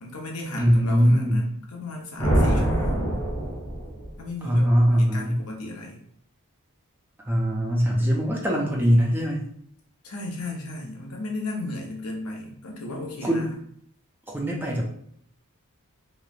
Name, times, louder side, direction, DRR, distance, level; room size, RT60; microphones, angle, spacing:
voice 1, 0.0-3.1 4.2-4.7 5.0-6.0 10.0-13.6, left 2 dB, 75° left, 0 dB, 0.7 m, -35 dB
voice 2, 0.6-1.5 4.4-5.4 7.2-9.4 13.2-13.5 14.3-14.8, equal, 10° right, -2 dB, 0.5 m, -21 dB
sound 1, 2.2-4.2, equal, 20° left, 0.8 m, -24 dB
3.0 x 2.0 x 2.4 m, 0.66 s
head